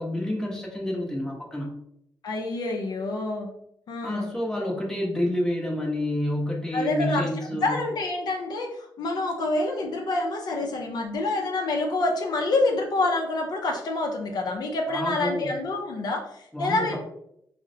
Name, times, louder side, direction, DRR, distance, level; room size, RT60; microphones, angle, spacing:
voice 1, 0.0-1.7 4.0-7.8 14.9-15.5 16.5-17.0, left 1 dB, 5° left, -2 dB, 0.7 m, -29 dB
voice 2, 2.2-3.5 3.9-4.3 6.7-7.3 7.6-17.0, left 2 dB, 60° left, 2 dB, 0.5 m, -27 dB
3.8 x 2.0 x 2.6 m, 0.74 s
wide cardioid pair, 130°, 8 cm